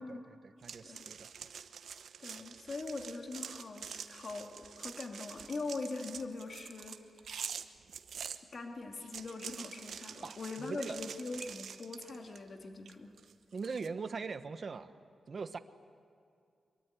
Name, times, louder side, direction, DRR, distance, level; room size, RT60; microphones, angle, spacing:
voice 1, 0.0-1.5 10.2-11.0 13.5-14.9 15.3-15.6, right 4 dB, 45° right, 10 dB, 1.1 m, -41 dB
sound 1, 0.6-8.4 9.0-12.5 12.9-13.9, right 7 dB, 75° right, 1.0 m, -46 dB
voice 2, 2.2-7.2 8.5-13.1, left 3 dB, 40° left, 3 dB, 2.5 m, -42 dB
24.5 x 23.0 x 9.5 m, 2.4 s
wide cardioid pair, 135°, 0 cm